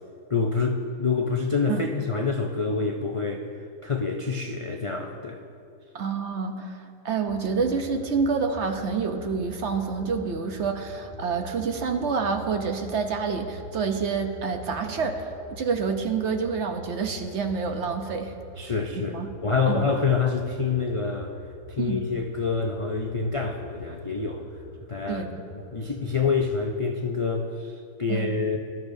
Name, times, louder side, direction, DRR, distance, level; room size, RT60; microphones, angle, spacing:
voice 1, 0.3-3.5 3.8-5.4 18.6-19.2 19.4-21.4 21.7-24.4 24.9-25.2 25.5-28.6, left 4 dB, 60° left, 2 dB, 0.3 m, -27 dB
voice 2, 5.9-18.3 19.0-19.3 19.7-19.8 21.8-22.0 25.1-25.4 28.1-28.3, right 5 dB, 55° right, 5 dB, 0.9 m, -28 dB
sound 1, 7.3-26.6, equal, 80° left, 1.5 m, -43 dB
21.5 x 12.0 x 2.7 m, 2.4 s
omnidirectional pair, 1.6 m